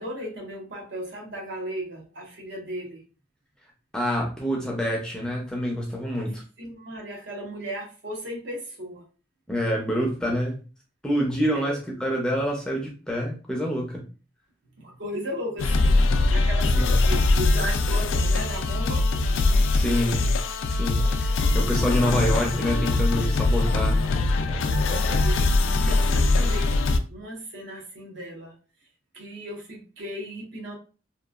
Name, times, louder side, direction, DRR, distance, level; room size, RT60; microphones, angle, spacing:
voice 1, 0.0-3.0 6.0-6.2 6.6-9.1 11.5-11.8 14.8-19.1 24.8-28.6 29.1-30.7, equal, 70° right, 0 dB, 0.9 m, -36 dB
voice 2, 3.9-6.4 9.5-10.6 11.0-14.0 16.7-16.9 19.7-20.3 20.7-24.0, equal, 5° left, -2 dB, 0.5 m, -27 dB
sound 1, 15.6-27.0, left 2 dB, 85° left, 0.3 m, -22 dB
sound 2, 20.2-26.9, equal, 35° right, 0.7 m, -45 dB
2.9 x 2.3 x 2.3 m, 0.34 s
head